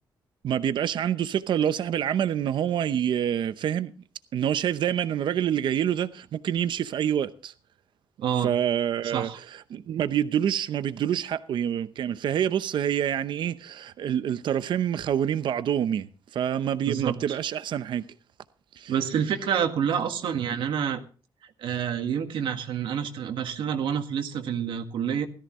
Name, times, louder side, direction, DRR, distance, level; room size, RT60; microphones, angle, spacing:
voice 1, 0.4-3.9 4.3-7.5 8.4-18.1 18.7-18.9, right 9 dB, 70° right, 0.8 m, -27 dB
voice 2, 8.2-8.5 9.1-9.4 16.9-17.4 18.9-21.0 21.6-25.3, right 8 dB, 85° right, 1.7 m, -28 dB
17.0 x 14.0 x 3.1 m
cardioid pair, 125°, 8 cm